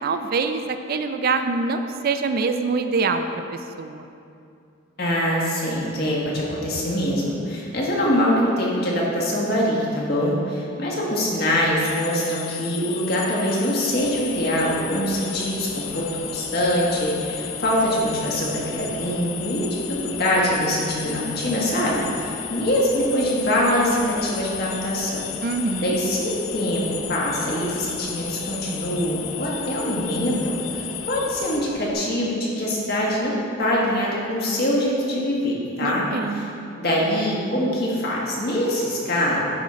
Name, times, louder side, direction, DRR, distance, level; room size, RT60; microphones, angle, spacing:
voice 1, 0.0-3.4 3.8-4.1 25.4-26.0 35.8-36.4, right 4 dB, 50° right, 8 dB, 0.4 m, -24 dB
voice 2, 5.0-25.2 25.8-30.8 31.1-36.1 36.3-36.4 36.8-39.4, equal, 50° left, -4 dB, 1.4 m, -24 dB
sound 1, 11.8-31.6, left 12 dB, 85° left, 0.4 m, -35 dB
sound 2, 13.9-31.9, left 1 dB, 35° left, 1.1 m, -40 dB
10.0 x 3.8 x 4.3 m, 2.6 s
head